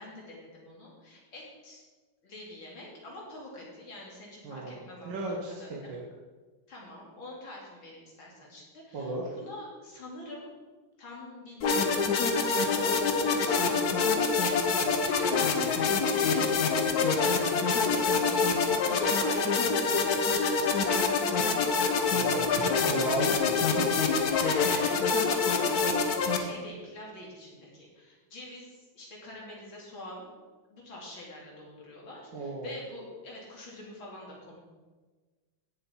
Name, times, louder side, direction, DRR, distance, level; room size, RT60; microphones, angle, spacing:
voice 1, 0.0-1.8 2.2-5.8 6.7-10.5 11.0-16.6 17.0-17.4 17.7-23.4 24.3-30.3 30.7-34.6, left 1 dB, 75° left, -3 dB, 3.8 m, -45 dB
voice 2, 4.4-6.0 8.9-9.2 15.4-15.9 22.1-22.4 22.8-23.8 32.3-32.7, right 2 dB, 65° right, -2 dB, 2.0 m, -35 dB
sound 1, 11.6-26.4, left 5 dB, 55° left, 1.4 m, -26 dB
16.5 x 7.5 x 4.6 m, 1.3 s
omnidirectional pair, 2.2 m